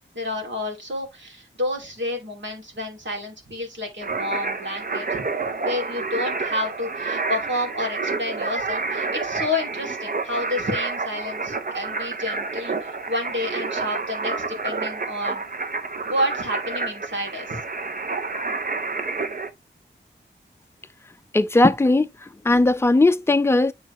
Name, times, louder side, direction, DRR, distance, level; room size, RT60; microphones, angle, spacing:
voice 1, 0.1-5.2 5.6-15.5 16.1-17.6, left 1 dB, 60° right, 2.7 m, -30 dB
sound 1, 4.0-19.5, right 3 dB, 45° right, 0.8 m, -29 dB
voice 2, 21.3-22.1 22.4-23.7, left 2 dB, 10° left, 0.5 m, -17 dB
9.1 x 3.9 x 3.1 m
wide cardioid pair, 85°, 21 cm